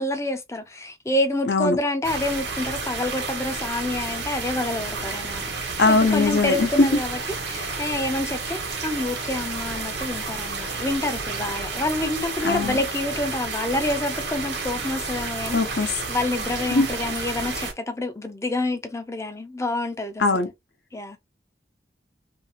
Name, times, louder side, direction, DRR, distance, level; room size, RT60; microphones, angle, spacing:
voice 1, 0.0-20.4 20.9-21.2, left 2 dB, 15° left, 0.5 m, -28 dB
voice 2, 1.5-1.8 5.8-6.9 12.4-12.8 15.5-15.9 16.7-16.9 20.2-20.5, left 3 dB, 65° left, 0.7 m, -20 dB
sound 1, 2.0-17.7, right 4 dB, 80° right, 1.1 m, -31 dB
2.8 x 2.6 x 2.7 m
head